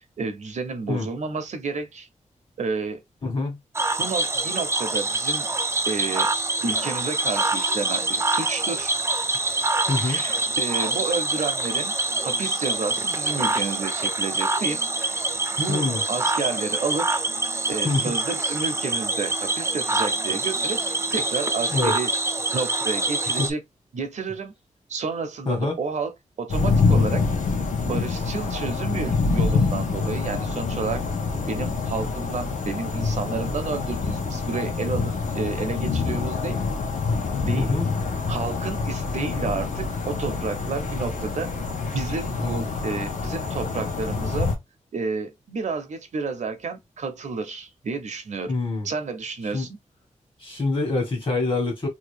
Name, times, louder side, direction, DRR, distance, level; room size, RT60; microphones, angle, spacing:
voice 1, 0.2-2.1 2.6-3.0 4.0-5.5 5.9-6.3 6.6-8.9 10.0-11.9 12.2-15.2 15.6-17.2 17.7-22.1 22.5-23.6 23.9-24.5 24.9-27.3 27.9-31.0 31.5-36.6 37.4-37.7 38.3-41.5 41.9-44.5 44.9-48.5 48.8-49.8, right 4 dB, 65° right, 0.7 m, -31 dB
voice 2, 3.2-3.6 9.9-10.2 15.7-16.0 17.8-18.0 21.7-21.9 23.4-23.5 25.5-25.8 37.5-37.8 42.4-42.7 48.5-48.9 49.5-49.7 50.4-51.9, left 3 dB, 40° left, 1.4 m, -25 dB
Cricket / Frog, 3.7-23.5, right 2 dB, 20° right, 0.4 m, -25 dB
sound 1, 26.5-44.6, left 4 dB, 80° left, 0.9 m, -26 dB
2.8 x 2.4 x 3.2 m
wide cardioid pair, 120°, 13 cm